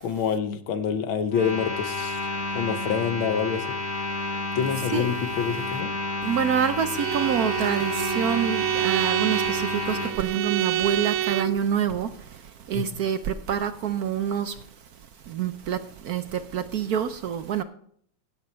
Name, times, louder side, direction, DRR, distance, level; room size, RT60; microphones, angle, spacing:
voice 1, 0.0-2.2 2.6-3.7 4.6-5.9 12.7-13.0, left 7 dB, 90° left, 10 dB, 1.8 m, -27 dB
sound 1, 1.3-10.1, left 2 dB, 20° left, 1.9 m, -31 dB
voice 2, 6.2-14.6 15.3-17.6, right 8 dB, 65° right, 10 dB, 1.0 m, -27 dB
Bowed string instrument, 6.9-11.6, right 13 dB, 85° right, 1.4 m, -27 dB
16.0 x 7.7 x 4.4 m, 0.62 s
omnidirectional pair, 2.1 m